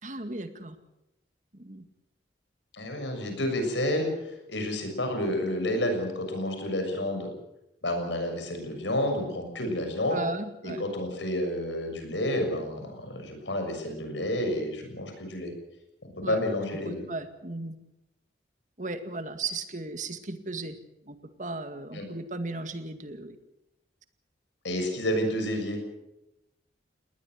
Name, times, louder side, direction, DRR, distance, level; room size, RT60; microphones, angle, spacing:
voice 1, 0.0-0.8 1.5-1.9 10.1-10.9 16.2-16.4 16.8-17.8 18.8-20.8 21.1-23.4, right 2 dB, 45° right, 8 dB, 2.0 m, -36 dB
voice 2, 2.7-7.3 7.8-10.2 10.6-15.5 16.0-17.1 21.9-22.0 24.6-25.8, left 1 dB, 90° left, 5 dB, 6.7 m, -30 dB
20.5 x 19.0 x 8.0 m, 0.89 s
head